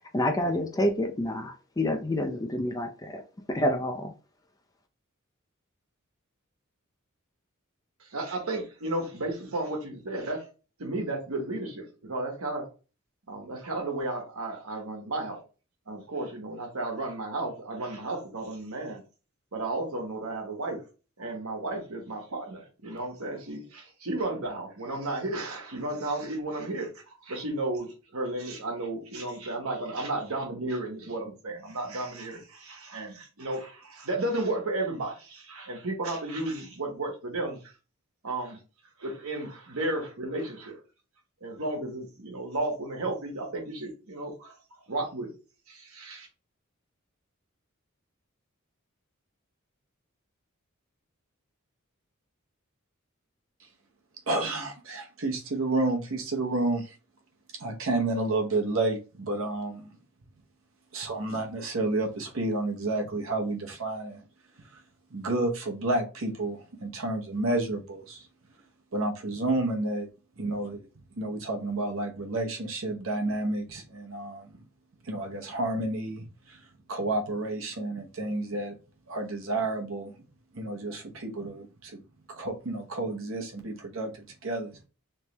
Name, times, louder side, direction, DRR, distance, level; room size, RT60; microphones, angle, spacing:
voice 1, 0.1-3.2 3.5-4.1, left 1 dB, 15° left, 6 dB, 0.4 m, -28 dB
voice 2, 8.0-10.4 10.8-12.6 13.3-15.4 15.9-19.0 19.5-20.8 21.2-37.6 38.2-38.6 39.0-40.8 41.4-44.6 44.9-45.3 45.7-46.3, right 2 dB, 85° right, 2 dB, 1.2 m, -33 dB
voice 3, 54.3-56.9 57.6-60.0 60.9-64.2 65.1-68.3 68.9-70.1 70.4-70.9 71.2-74.5 75.0-76.6 76.9-78.8 79.1-80.1 80.5-82.0 82.3-84.8, right 2 dB, 70° right, 2 dB, 0.9 m, -30 dB
3.3 x 3.2 x 3.0 m, 0.34 s
head